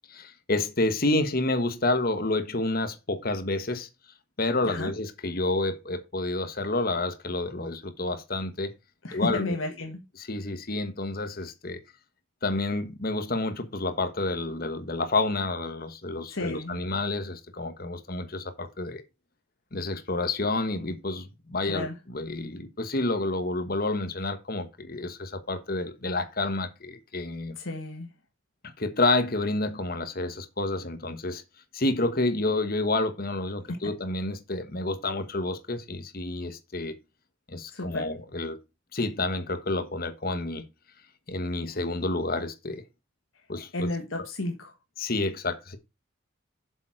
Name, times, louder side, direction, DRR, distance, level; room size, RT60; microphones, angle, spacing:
voice 1, 0.1-3.9 4.4-8.7 9.1-9.6 10.2-11.8 12.4-19.0 19.7-27.6 28.8-31.4 31.7-36.9 37.5-38.6 38.9-40.6 41.3-42.8 43.5-43.9 45.0-45.8, left 2 dB, 45° left, 1.4 m, -29 dB
voice 2, 9.0-10.0 16.3-16.8 21.7-22.0 27.6-28.1 33.7-33.8 37.7-38.1 43.7-44.7, left 2 dB, 80° left, 1.6 m, -32 dB
7.7 x 7.2 x 4.6 m
head